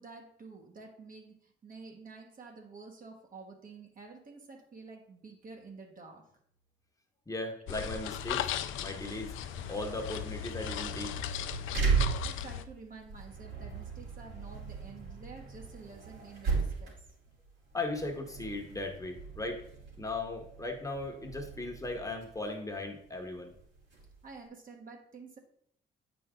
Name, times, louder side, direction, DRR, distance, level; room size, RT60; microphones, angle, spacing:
voice 1, 0.0-6.3 12.2-17.1 24.2-25.4, right 4 dB, 45° right, 2 dB, 1.4 m, -50 dB
voice 2, 7.3-8.5 8.8-9.3 9.7-11.1 17.7-19.6 20.0-23.5, left 2 dB, 15° left, 2 dB, 1.3 m, -37 dB
sound 1, 7.7-12.7, left 10 dB, 85° left, 0.5 m, -37 dB
sound 2, 9.1-24.4, right 5 dB, 65° right, 3.2 m, -37 dB
8.6 x 5.1 x 3.8 m, 0.68 s
cardioid pair, 90°, 20 cm